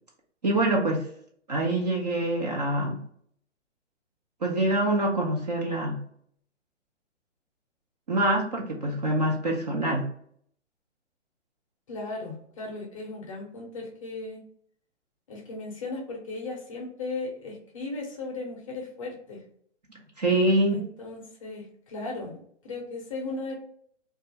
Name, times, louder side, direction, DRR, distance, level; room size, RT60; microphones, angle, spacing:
voice 1, 0.4-1.1 1.5-3.0 4.4-6.0 8.1-10.1 20.2-20.8, right 1 dB, 35° right, -1 dB, 0.4 m, -25 dB
voice 2, 11.9-14.4 15.3-19.4 20.7-23.5, left 3 dB, 30° left, 0 dB, 0.5 m, -36 dB
2.4 x 2.3 x 2.7 m, 0.64 s
hypercardioid pair, 140°, 36 cm